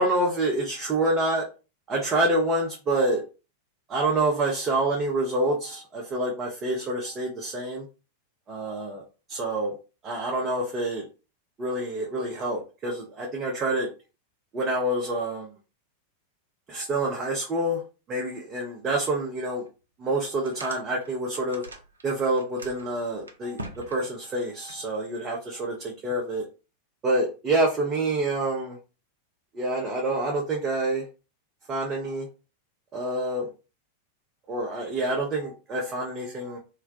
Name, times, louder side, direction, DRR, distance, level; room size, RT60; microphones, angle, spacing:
voice 1, 0.0-1.5 1.9-3.2 3.9-7.9 8.5-9.0 9.3-9.7 10.0-11.0 11.6-13.9 14.5-15.5 16.7-17.8 18.1-19.6 20.0-21.6 22.0-26.4 27.0-28.8 29.5-31.0 31.7-32.3 32.9-33.5 34.5-36.6, right 1 dB, 25° right, -2 dB, 0.6 m, -27 dB
sound 1, 19.1-19.2 19.6-19.7 20.2-22.0 22.3-24.7, right 1 dB, 75° right, 0.4 m, -42 dB
2.2 x 2.1 x 2.6 m, 0.32 s
figure-of-eight pair, 90°, 0 cm